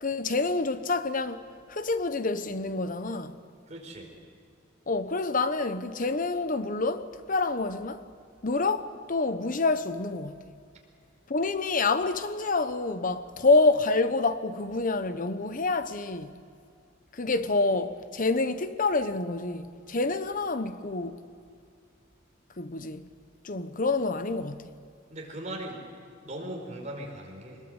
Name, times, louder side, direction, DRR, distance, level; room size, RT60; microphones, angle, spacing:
voice 1, 0.0-1.4 1.7-3.4 4.9-8.0 8.4-10.4 11.3-16.4 17.1-21.2 22.6-23.1 23.4-24.7, left 3 dB, 45° left, 1.0 m, -27 dB
voice 2, 3.7-4.1 25.1-25.8 26.2-27.6, right 1 dB, 35° right, 4.9 m, -39 dB
23.5 x 21.0 x 8.1 m
head